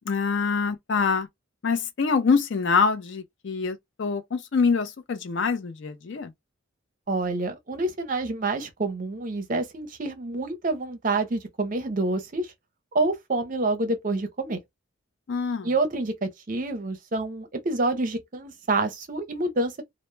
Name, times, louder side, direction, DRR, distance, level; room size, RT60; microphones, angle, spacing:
voice 1, 0.1-1.3 1.6-6.3 15.3-15.7, left 5 dB, 55° left, 0.4 m, -25 dB
voice 2, 7.1-12.5 12.9-14.6 15.6-19.8, right 2 dB, 40° right, 0.5 m, -27 dB
2.1 x 2.0 x 3.1 m
head